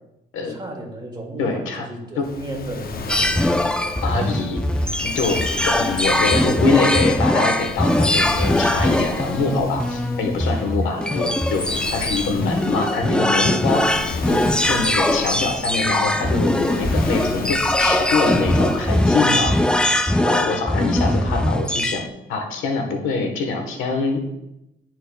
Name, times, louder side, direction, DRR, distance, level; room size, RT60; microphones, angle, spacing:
voice 1, 0.4-3.3, right 1 dB, 20° right, 0 dB, 2.0 m, -34 dB
voice 2, 1.4-1.9 2.2-2.3 4.0-4.6 5.1-11.6 11.9-14.0 14.3-14.4 14.7-19.5 20.2-22.0 22.3-24.2, left 4 dB, 85° left, 3 dB, 1.2 m, -24 dB
Waves surf, 2.2-19.7, left 4 dB, 50° left, 0.7 m, -34 dB
sound 1, 3.1-22.1, left 1 dB, 5° left, 0.5 m, -21 dB
11.5 x 4.4 x 2.2 m, 0.88 s
cardioid pair, 90°, 20 cm